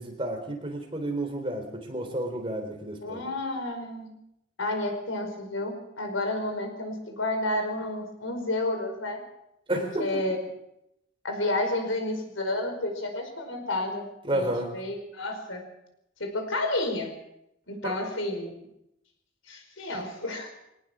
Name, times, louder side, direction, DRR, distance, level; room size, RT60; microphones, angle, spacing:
voice 1, 0.0-3.3 9.7-10.2 14.2-14.7 17.8-17.9 19.9-20.0, right 1 dB, 25° right, 4 dB, 3.7 m, -31 dB
voice 2, 3.0-4.1 4.6-9.2 9.7-10.4 11.2-14.1 14.3-15.6 16.2-17.1 17.7-18.6 19.5-20.6, left 2 dB, 85° left, 4 dB, 5.0 m, -31 dB
22.5 x 19.0 x 6.2 m, 0.81 s
head